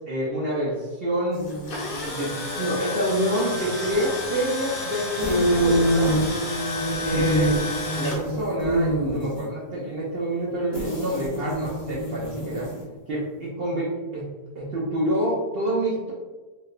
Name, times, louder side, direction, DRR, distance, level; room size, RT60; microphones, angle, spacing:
voice 1, 0.1-1.4 2.1-6.2 7.0-7.5 7.9-12.7 13.1-14.3 14.5-16.1, right 1 dB, 50° right, -6 dB, 0.7 m, -27 dB
sound 1, 1.3-2.6 5.2-9.5 10.7-13.0, right 1 dB, 40° left, 0.9 m, -26 dB
Tools, 1.5-8.2, left 2 dB, 60° left, 0.5 m, -31 dB
3.2 x 3.0 x 2.4 m, 1.2 s
omnidirectional pair, 1.6 m